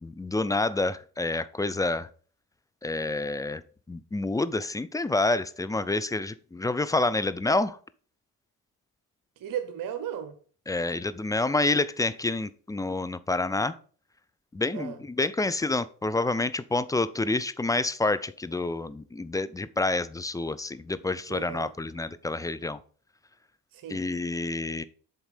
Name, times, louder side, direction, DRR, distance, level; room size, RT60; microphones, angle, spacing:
voice 1, 0.0-2.1 2.8-3.6 3.9-7.8 10.7-13.8 14.5-22.8 23.9-24.8, left 2 dB, 10° left, 0.3 m, -28 dB
voice 2, 9.4-10.4 14.7-15.0 21.3-21.7 23.7-24.0, right 9 dB, 50° right, 0.8 m, -35 dB
7.0 x 4.1 x 5.3 m
hypercardioid pair, 45°, 43 cm